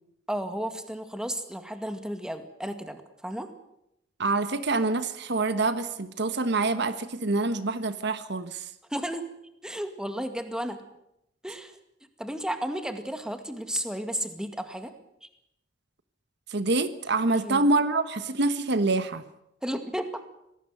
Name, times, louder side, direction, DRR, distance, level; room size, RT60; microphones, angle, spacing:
voice 1, 0.3-3.5 8.9-9.2 9.6-10.8 11.4-11.7 12.2-14.9 17.3-17.6 19.6-20.2, equal, 5° right, 7 dB, 2.1 m, -33 dB
voice 2, 4.2-8.6 16.5-19.2, right 3 dB, 60° right, 12 dB, 1.3 m, -26 dB
25.5 x 18.5 x 7.9 m, 0.81 s
head